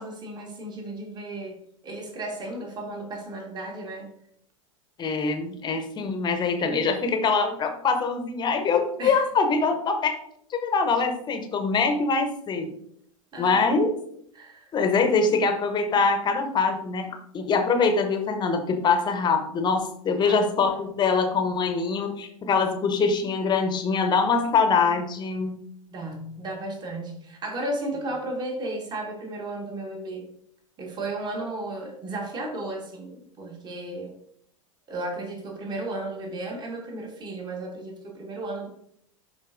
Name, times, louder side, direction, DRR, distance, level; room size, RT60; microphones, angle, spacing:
voice 1, 0.0-4.1 9.0-9.2 13.3-13.7 14.3-14.7 15.1-15.2 20.2-20.5 24.6-25.0 25.9-30.3 30.8-34.2 34.9-38.7, right 2 dB, 25° right, 2 dB, 1.6 m, -34 dB
voice 2, 5.0-10.1 10.5-12.7 13.4-13.9 14.7-17.1 17.3-25.6, left 4 dB, 25° left, 6 dB, 0.9 m, -23 dB
11.0 x 4.0 x 2.6 m, 0.69 s
figure-of-eight pair, 90°, 18 cm